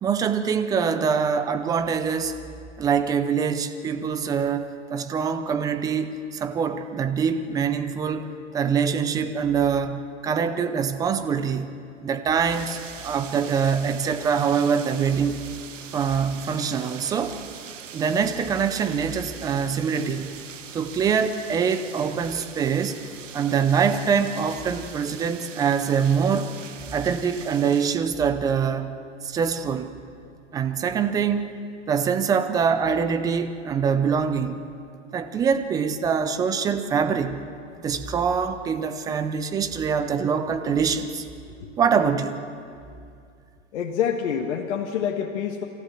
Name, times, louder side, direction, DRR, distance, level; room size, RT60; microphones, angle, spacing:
voice 1, 0.0-2.4 2.8-11.8 12.0-15.4 15.9-17.4 17.9-20.4 20.7-23.0 23.3-26.5 26.9-29.0 29.2-29.9 30.5-31.5 31.9-34.7 35.1-37.5 37.8-41.2 41.8-42.4, right 6 dB, 10° right, 10 dB, 0.5 m, -24 dB
sound 1, 12.5-28.0, right 8 dB, 75° right, 1.6 m, -42 dB
voice 2, 43.7-45.6, left 8 dB, 55° left, 2 dB, 1.5 m, -27 dB
25.5 x 14.0 x 7.2 m, 2.4 s
hypercardioid pair, 130°, 39 cm